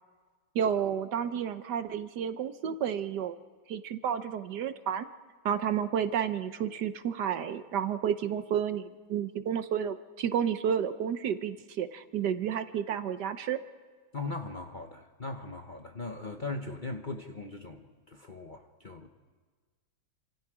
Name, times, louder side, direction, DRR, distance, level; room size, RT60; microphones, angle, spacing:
voice 1, 0.5-3.4 3.7-5.1 5.4-13.6, right 8 dB, 70° right, 11 dB, 1.4 m, -31 dB
voice 2, 14.1-19.1, left 3 dB, 35° left, 3 dB, 0.9 m, -39 dB
28.0 x 26.5 x 4.9 m, 1.4 s
omnidirectional pair, 2.0 m